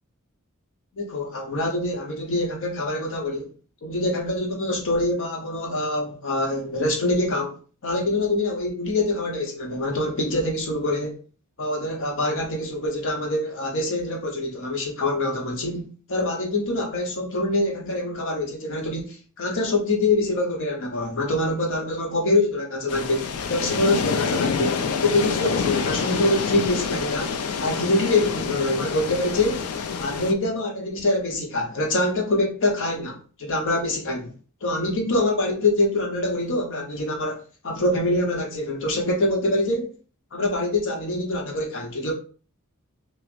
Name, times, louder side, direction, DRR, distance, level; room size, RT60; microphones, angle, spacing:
voice 1, 0.9-3.5 3.8-11.2 11.6-29.7 30.0-34.3 34.6-39.9 40.3-42.1, left 2 dB, 60° left, 0.8 m, -25 dB
sound 1, 22.9-30.3, left 5 dB, 80° left, 0.5 m, -27 dB
6.0 x 2.1 x 2.5 m
head